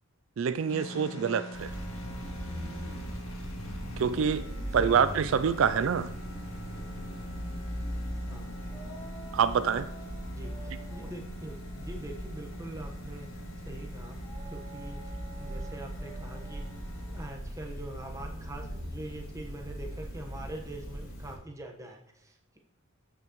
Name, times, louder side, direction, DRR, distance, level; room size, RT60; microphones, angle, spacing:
voice 1, 0.4-1.7 4.0-4.4 4.7-6.1 9.3-9.9, right 7 dB, 65° right, 13 dB, 0.4 m, -26 dB
sound 1, 0.7-17.3, equal, 80° left, 1.8 m, -45 dB
sound 2, 1.5-21.3, equal, 60° left, 3.3 m, -40 dB
voice 2, 4.7-5.5 8.3-9.0 10.3-13.4 13.6-14.2 14.5-16.7 17.1-22.6, right 1 dB, 15° right, 2 dB, 1.2 m, -44 dB
sound 3, 8.7-13.4 14.2-18.9, right 3 dB, 15° left, 3.1 m, -52 dB
15.0 x 5.9 x 3.1 m, 0.79 s
head